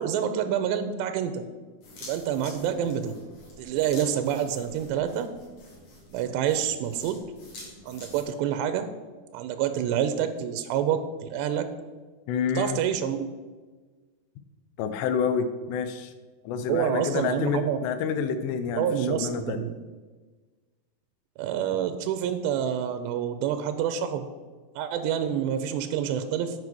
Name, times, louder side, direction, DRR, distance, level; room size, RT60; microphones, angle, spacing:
voice 1, 0.0-1.5 2.0-3.1 3.6-5.3 6.1-7.2 7.8-8.9 9.3-11.7 12.6-13.3 16.7-17.8 18.8-19.7 21.4-24.2 24.8-26.5, right 9 dB, 90° right, 9 dB, 2.8 m, -27 dB
sound 1, 1.8-8.2, left 1 dB, 45° left, 2.9 m, -47 dB
voice 2, 12.3-12.8 14.8-16.1 16.4-19.6, left 6 dB, 85° left, 9 dB, 2.9 m, -28 dB
9.5 x 5.0 x 6.1 m, 1.4 s
omnidirectional pair, 4.9 m